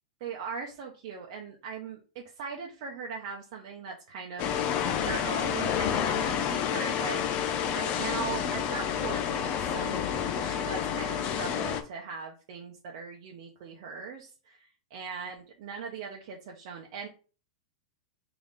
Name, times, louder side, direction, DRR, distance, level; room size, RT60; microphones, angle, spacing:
voice 1, 0.2-7.2 7.7-10.0 10.3-17.1, right 5 dB, 55° right, 0 dB, 0.8 m, -40 dB
sound 1, 4.4-11.8, left 8 dB, 35° left, 0.6 m, -29 dB
3.4 x 2.9 x 4.0 m, 0.36 s
hypercardioid pair, 140°, 4 cm